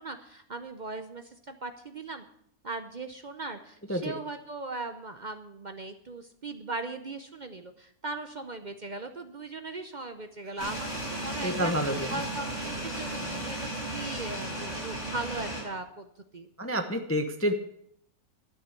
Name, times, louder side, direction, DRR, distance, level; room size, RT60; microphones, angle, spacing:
voice 1, 0.0-2.2 2.6-16.1 16.3-16.5, right 3 dB, 45° right, 8 dB, 0.6 m, -39 dB
sound 1, 10.6-15.6, right 1 dB, 50° left, 5.9 m, -35 dB
voice 2, 11.4-12.2 16.6-17.5, equal, 10° left, 5 dB, 0.7 m, -28 dB
12.0 x 6.6 x 8.2 m, 0.69 s
omnidirectional pair, 1.6 m